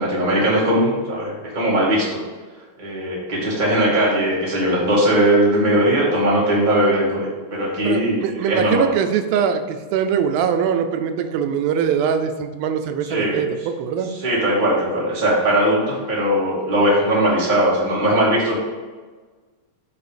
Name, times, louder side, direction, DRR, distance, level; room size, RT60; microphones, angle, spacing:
voice 1, 0.0-2.2 2.8-8.8 13.1-13.4 14.2-18.6, right 1 dB, 15° right, -6 dB, 1.7 m, -19 dB
voice 2, 7.8-14.1, right 7 dB, 85° right, 7 dB, 2.4 m, -22 dB
8.5 x 3.9 x 5.0 m, 1.4 s
omnidirectional pair, 4.1 m